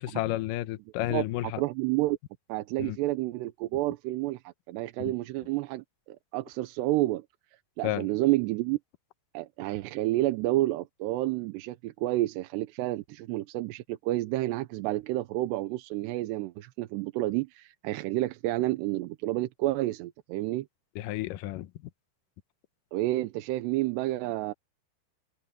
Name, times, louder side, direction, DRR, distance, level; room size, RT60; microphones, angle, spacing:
voice 1, 0.0-1.6 2.8-3.0 5.0-5.1 7.8-8.1 21.0-21.7, left 15 dB, 80° left, 1.9 m, -31 dB
voice 2, 1.6-2.2 2.5-7.3 7.8-8.8 9.3-20.7 22.9-24.5, right 17 dB, 90° right, 2.9 m, -30 dB
omnidirectional pair, 4.8 m